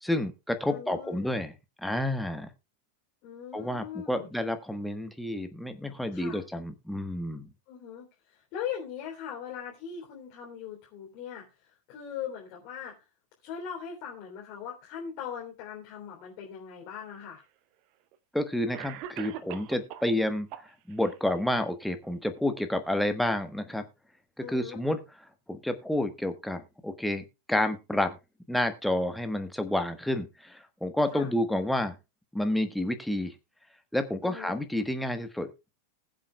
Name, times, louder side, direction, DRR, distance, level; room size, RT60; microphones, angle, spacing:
voice 1, 0.0-1.5 1.8-2.5 3.5-7.5 18.3-20.5 20.9-23.8 24.5-25.0 25.5-28.2 28.5-31.9 32.3-33.3 33.9-35.5, left 1 dB, ahead, 7 dB, 1.3 m, -29 dB
voice 2, 0.7-1.3 3.2-4.3 6.1-6.4 7.7-11.5 11.9-12.9 13.4-17.4 24.4-24.8 31.1-31.3 34.2-34.6, left 8 dB, 45° left, -2 dB, 3.3 m, -40 dB
Cough, 17.0-17.1 18.1-18.2 18.7-20.1 20.5-21.1, right 11 dB, 40° right, 0.9 m, -41 dB
20.5 x 7.5 x 2.3 m, 0.27 s
figure-of-eight pair, 90°, 0 cm